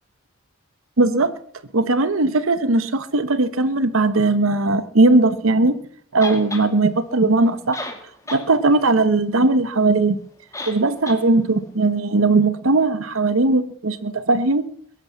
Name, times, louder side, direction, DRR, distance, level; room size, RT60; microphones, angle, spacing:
voice 1, 1.0-1.3 1.7-5.8 6.1-7.9 8.3-10.2 10.7-14.7, right 2 dB, 90° right, 12 dB, 1.0 m, -18 dB
sound 1, 6.2-6.7 7.5-7.6 7.7-8.5 8.8-8.9 10.5-10.8 11.1-11.2, left 2 dB, 15° left, 2.3 m, -32 dB
21.5 x 8.6 x 7.3 m, 0.65 s
head